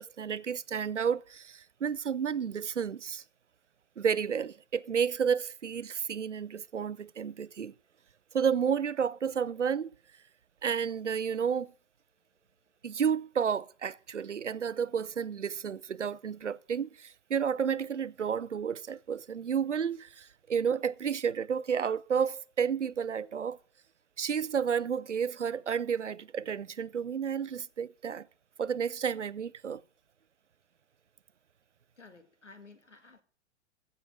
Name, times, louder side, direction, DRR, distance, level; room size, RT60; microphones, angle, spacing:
voice 1, 0.0-3.2 4.0-7.7 8.3-9.9 10.6-11.7 12.8-23.6 24.2-28.3 28.6-29.8, right 7 dB, 85° right, 0.6 m, -31 dB
voice 2, 32.0-33.2, left 3 dB, 85° left, 1.9 m, -54 dB
15.5 x 6.8 x 6.1 m
figure-of-eight pair, 100°, 35 cm